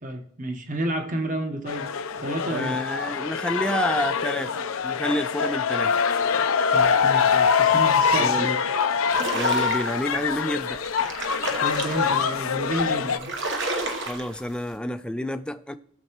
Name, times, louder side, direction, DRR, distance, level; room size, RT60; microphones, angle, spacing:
voice 1, 0.0-1.9 2.2-2.8 6.7-8.6 11.6-13.3, right 1 dB, 40° right, 1.1 m, -30 dB
sound 1, 1.7-13.2, left 6 dB, 90° left, 0.6 m, -24 dB
voice 2, 2.5-5.9 8.2-8.5 9.3-10.8 14.1-15.7, left 1 dB, 5° left, 0.4 m, -29 dB
sound 2, 9.1-10.1 10.7-12.3 12.8-12.9 13.1-14.5, right 2 dB, 60° right, 1.2 m, -31 dB
18.5 x 6.8 x 3.0 m
head